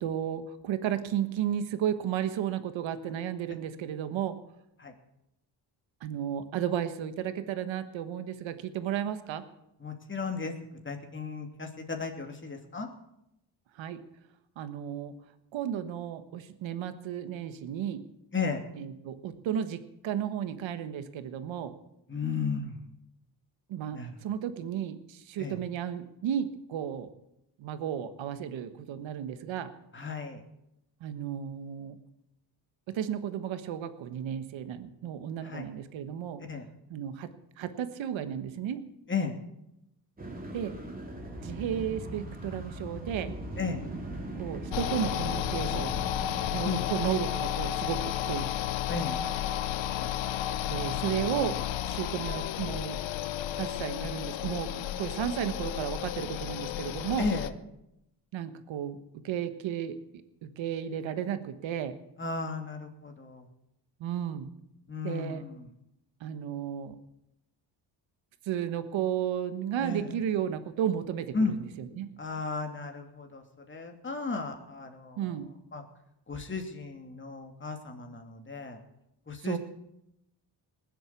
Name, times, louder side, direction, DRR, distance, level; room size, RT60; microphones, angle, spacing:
voice 1, 0.0-4.4 6.0-9.4 13.8-14.0 14.6-15.1 15.5-18.0 18.8-21.7 23.7-27.1 27.6-29.7 31.0-32.0 32.9-36.4 36.9-37.3 37.6-38.8 40.5-40.8 41.4-43.4 44.4-46.2 46.5-48.5 50.6-51.6 51.8-53.0 53.5-57.3 58.3-59.0 59.2-60.0 60.4-62.0 64.0-64.5 65.0-65.4 66.2-67.0 68.5-72.1 75.2-75.5 79.4-79.6, right 9 dB, 90° right, 11 dB, 1.4 m, -33 dB
voice 2, 9.8-10.5 10.8-12.9 18.3-18.6 22.1-22.8 23.9-24.1 25.4-25.6 29.9-30.4 35.4-35.7 36.5-36.7 39.1-39.4 43.6-43.8 46.6-46.9 48.9-49.2 49.9-50.1 57.2-57.5 62.2-63.5 64.9-65.7 69.8-70.1 71.3-71.5 72.2-75.4 75.7-75.8 76.3-78.8 79.3-79.6, left 4 dB, 25° left, 3 dB, 2.8 m, -34 dB
sound 1, 40.2-46.6, right 1 dB, 20° right, 3.7 m, -39 dB
sound 2, 44.7-57.5, left 11 dB, 80° left, 0.9 m, -32 dB
19.5 x 7.9 x 8.4 m, 0.83 s
cardioid pair, 80°, 45 cm